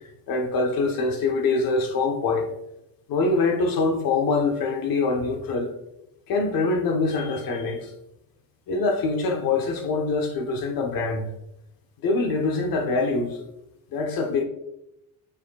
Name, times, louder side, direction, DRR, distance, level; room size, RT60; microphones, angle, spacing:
voice 1, 0.3-2.5 3.1-5.7 6.3-7.9 8.7-11.3 12.0-13.4 13.9-14.4, left 3 dB, 50° left, 1.0 m, -24 dB
10.0 x 4.4 x 2.3 m
cardioid pair, 160°, 44 cm